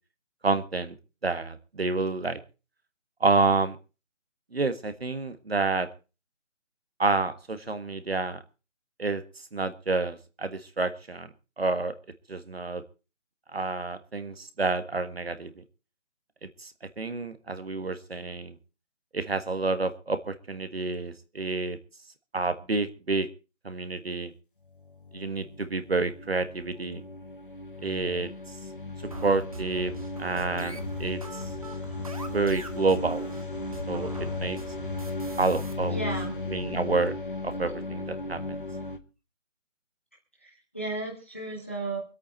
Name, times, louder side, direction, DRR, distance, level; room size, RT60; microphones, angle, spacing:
voice 1, 0.4-0.9 1.2-2.4 3.2-3.8 4.5-5.9 7.0-8.4 9.0-9.2 9.5-11.9 12.3-12.8 13.5-15.6 16.6-18.6 19.1-21.8 22.3-23.3 23.6-24.3 25.1-27.0 27.8-28.3 29.2-29.9 30.2-31.4 32.3-33.3 33.9-34.6 35.4-36.1 36.5-37.1 37.4-38.6, right 3 dB, 55° right, 11 dB, 1.6 m, -29 dB
sound 1, 24.8-39.0, left 2 dB, 45° left, 1.2 m, -36 dB
sound 2, 29.1-35.7, right 3 dB, 30° right, 1.5 m, -42 dB
voice 2, 35.9-36.3 40.4-42.0, right 2 dB, 10° left, -1 dB, 1.2 m, -34 dB
24.5 x 8.5 x 4.3 m, 0.33 s
figure-of-eight pair, 180°, 37 cm